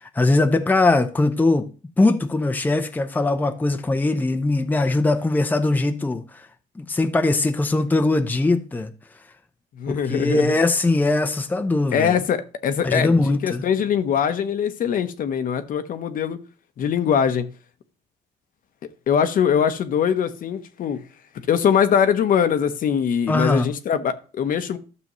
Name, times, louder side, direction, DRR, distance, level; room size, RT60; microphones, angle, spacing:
voice 1, 0.0-1.7 2.0-6.5 6.8-8.9 9.9-12.1 12.8-13.6 23.3-23.7, left 2 dB, 10° left, 0.7 m, -21 dB
voice 2, 9.8-10.6 11.9-16.4 16.8-17.5 19.1-21.0 21.5-24.8, left 8 dB, 55° left, 0.9 m, -22 dB
12.5 x 6.8 x 3.1 m
cardioid pair, 110°, 17 cm